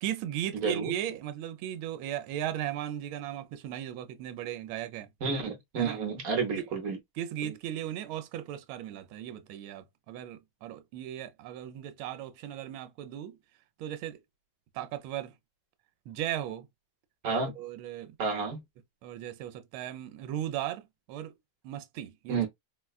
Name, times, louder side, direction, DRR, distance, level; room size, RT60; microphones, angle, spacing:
voice 1, 0.0-5.1 5.8-6.0 6.6-6.7 7.2-13.4 13.8-14.2 14.7-15.3 16.1-16.7 17.3-18.2 19.0-21.3 21.6-22.5, right 11 dB, 80° right, 1.4 m, -37 dB
voice 2, 0.5-0.9 5.2-7.0 7.4-7.5 17.2-17.5 18.2-18.6 22.3-22.5, right 5 dB, 60° right, 1.0 m, -30 dB
4.0 x 2.2 x 2.3 m
omnidirectional pair, 2.3 m